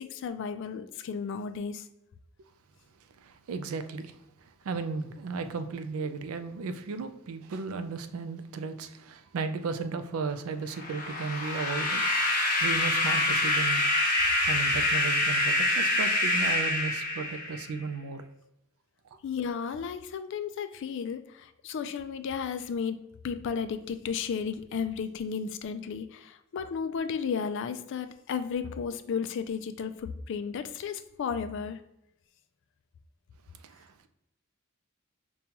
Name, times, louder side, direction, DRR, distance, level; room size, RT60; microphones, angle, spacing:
voice 1, 0.0-1.8 19.2-23.0 23.2-31.8, left 6 dB, 60° left, 0.3 m, -33 dB
voice 2, 3.2-4.2 4.6-12.0 12.6-13.8 14.5-18.2 33.6-34.1, right 4 dB, 85° right, 0.4 m, -35 dB
sound 1, 10.7-17.8, left 1 dB, 40° left, 0.8 m, -26 dB
5.3 x 2.3 x 2.8 m
head